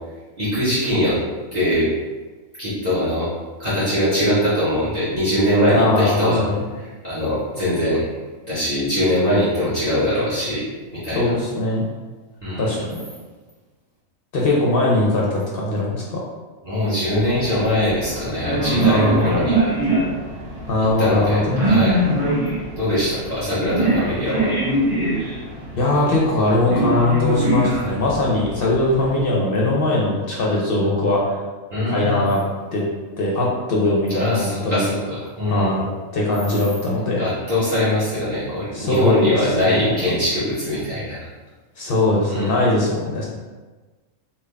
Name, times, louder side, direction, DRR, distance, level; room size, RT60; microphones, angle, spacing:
voice 1, 0.4-1.2 1.5-1.9 2.6-3.3 3.6-6.4 6.8-8.0 8.5-10.7 10.9-11.3 12.4-12.8 16.6-19.7 21.0-22.0 22.7-24.5 31.7-32.2 34.2-35.7 37.2-41.2 42.2-42.5, left 1 dB, 35° right, -12 dB, 1.1 m, -22 dB
voice 2, 5.7-6.6 11.1-11.9 12.6-13.0 14.3-16.2 18.8-19.3 20.7-21.4 25.7-31.3 31.9-32.4 32.7-32.8 33.2-34.8 35.5-35.9 36.1-37.2 38.7-39.9 41.8-43.3, left 2 dB, 55° left, -4 dB, 0.7 m, -20 dB
sound 1, 17.1-29.2, right 1 dB, 55° right, 2.0 m, -23 dB
3.7 x 2.2 x 3.3 m, 1.3 s
omnidirectional pair, 1.4 m